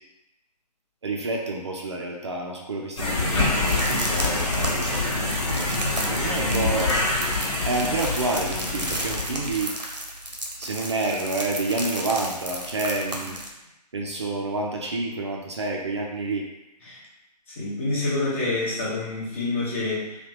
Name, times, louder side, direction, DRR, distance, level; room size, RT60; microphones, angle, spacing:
voice 1, 1.0-5.6 6.1-7.0 7.7-9.7 10.6-13.4 13.9-16.5, right 2 dB, 45° right, 0 dB, 0.4 m, -29 dB
sound 1, 3.0-9.6, left 2 dB, 40° left, 0.8 m, -26 dB
sound 2, 3.7-13.5, right 1 dB, 85° right, 0.7 m, -34 dB
voice 2, 6.2-6.6 16.9-17.0 17.6-20.1, left 2 dB, 20° left, -6 dB, 0.6 m, -27 dB
3.3 x 2.2 x 3.2 m, 0.93 s
figure-of-eight pair, 140°, 21 cm